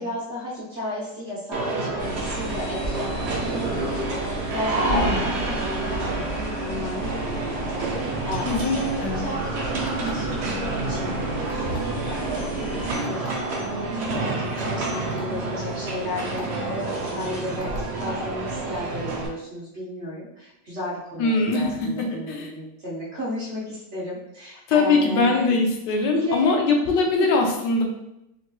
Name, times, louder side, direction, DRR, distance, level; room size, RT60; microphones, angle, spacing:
voice 1, 0.0-17.7 18.0-25.6 26.1-26.6 27.2-27.3, left 1 dB, 50° right, -6 dB, 0.9 m, -34 dB
sound 1, 1.5-19.3, right 2 dB, 85° right, 0.5 m, -29 dB
sound 2, 2.0-13.0, right 2 dB, 35° left, 1.7 m, -33 dB
voice 2, 4.9-5.3 8.5-9.3 21.2-21.7 22.3-22.5 24.7-27.8, left 3 dB, 80° left, 2 dB, 1.2 m, -22 dB
sound 3, 9.8-10.3 11.5-11.9 13.0-13.3 14.0-14.1 14.6-14.7 15.1-15.2 16.2-16.4 17.6-17.9, left 3 dB, 65° left, 0.9 m, -41 dB
3.6 x 2.9 x 2.2 m, 0.85 s
omnidirectional pair, 1.9 m